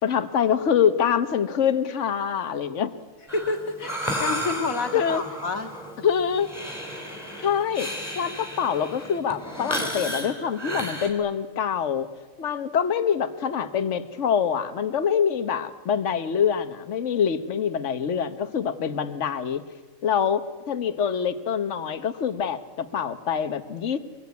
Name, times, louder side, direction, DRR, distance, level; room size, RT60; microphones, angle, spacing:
voice 1, 0.0-2.9 4.9-5.2 6.0-6.5 7.4-7.9 8.2-12.1 12.4-19.6 20.0-24.0, left 7 dB, 60° left, 11 dB, 1.4 m, -25 dB
voice 2, 3.3-5.7, left 4 dB, 80° left, 8 dB, 2.3 m, -29 dB
Breathing, 3.3-11.1, equal, 10° left, 4.7 m, -33 dB
23.0 x 22.0 x 9.5 m, 1.4 s
omnidirectional pair, 1.4 m